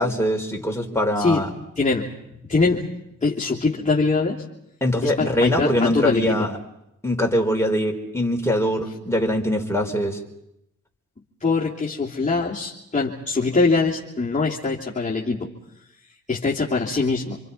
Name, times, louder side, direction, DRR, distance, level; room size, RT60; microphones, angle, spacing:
voice 1, 0.0-1.5 4.8-6.6 7.0-10.2, equal, 10° left, 1 dB, 4.6 m, -22 dB
voice 2, 1.2-1.5 1.8-2.8 3.2-4.4 5.0-6.5 11.4-15.5 16.3-17.4, left 3 dB, 25° left, -5 dB, 3.0 m, -23 dB
27.5 x 24.0 x 5.6 m, 0.81 s
supercardioid pair, 45°, 31 cm